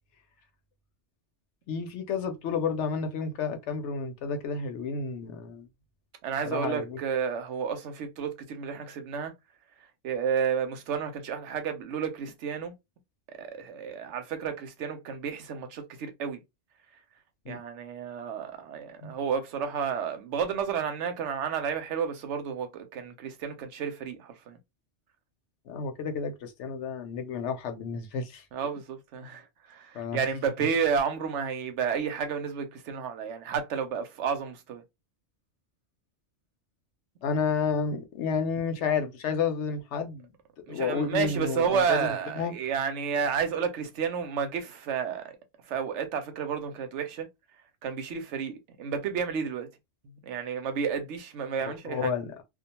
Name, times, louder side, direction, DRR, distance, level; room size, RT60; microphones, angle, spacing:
voice 1, 1.7-5.7 6.4-7.0 17.5-17.6 19.0-19.2 25.7-28.4 29.9-30.2 37.2-40.3 40.7-42.1 42.3-42.5 51.6-52.4, left 5 dB, 80° left, 0.9 m, -31 dB
voice 2, 6.2-9.3 10.0-12.7 13.3-16.4 17.5-24.6 28.5-34.8 40.6-45.3 45.6-47.3 47.8-49.7 50.2-52.1, right 7 dB, 90° right, 0.9 m, -31 dB
2.3 x 2.2 x 2.8 m
omnidirectional pair, 1.2 m